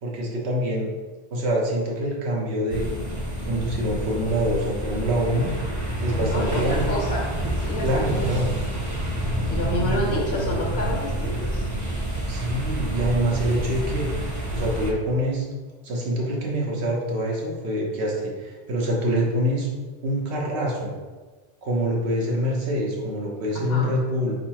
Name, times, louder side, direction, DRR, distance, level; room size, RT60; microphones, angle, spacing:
voice 1, 0.0-0.9 1.3-2.9 3.5-5.5 6.0-6.9 7.8-8.5 9.8-10.1 12.3-14.1 14.5-15.5 15.8-19.7 20.0-20.9 21.6-24.4, equal, 85° right, -2 dB, 1.2 m, -25 dB
sound 1, 2.7-14.9, right 1 dB, 20° right, 0.6 m, -28 dB
voice 2, 6.1-7.3 7.6-8.3 9.5-11.7 23.5-23.9, left 1 dB, 70° left, -2 dB, 1.3 m, -29 dB
4.6 x 3.7 x 2.9 m, 1.3 s
omnidirectional pair, 1.1 m